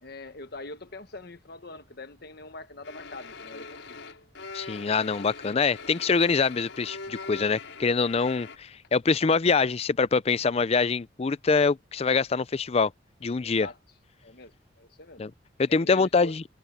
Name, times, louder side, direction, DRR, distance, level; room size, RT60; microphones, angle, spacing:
voice 1, 0.0-4.0 13.4-13.8 14.2-15.2 15.8-16.3, left 2 dB, 55° left, 1.4 m, -43 dB
sound 1, 2.8-8.6, left 4 dB, 80° left, 5.4 m, -42 dB
voice 2, 4.5-12.9 13.2-13.7 15.2-15.3 15.6-16.4, left 4 dB, 30° left, 0.4 m, -24 dB
head